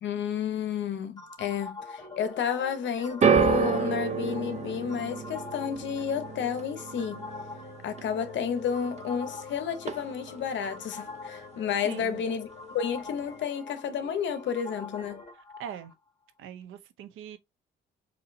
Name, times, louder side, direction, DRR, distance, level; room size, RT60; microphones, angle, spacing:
voice 1, 0.0-7.3 7.8-12.5 12.7-15.2, left 8 dB, 65° left, 0.9 m, -31 dB
sound 1, 1.2-15.9, left 3 dB, 20° left, 0.8 m, -46 dB
sound 2, 1.8-15.3, left 4 dB, 40° left, 1.8 m, -48 dB
sound 3, 3.2-9.5 9.7-10.4 11.1-11.2, right 6 dB, 35° right, 0.6 m, -29 dB
voice 2, 11.8-12.2 15.3-15.9 16.4-17.4, right 9 dB, 85° right, 0.7 m, -42 dB
4.2 x 2.7 x 2.6 m
cardioid pair, 90°, 20 cm